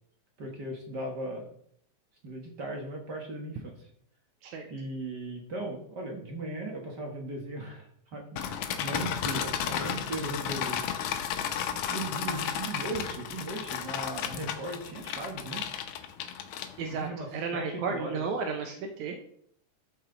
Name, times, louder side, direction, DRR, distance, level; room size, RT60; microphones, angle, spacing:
voice 1, 0.4-1.4 2.2-3.7 4.7-10.8 11.5-15.6 16.9-18.2, right 2 dB, 45° right, 1 dB, 1.5 m, -38 dB
sound 1, 8.4-17.1, left 9 dB, 80° left, 2.2 m, -33 dB
voice 2, 16.8-19.2, right 5 dB, 80° right, 4 dB, 2.3 m, -33 dB
12.5 x 6.0 x 3.9 m, 0.67 s
omnidirectional pair, 3.5 m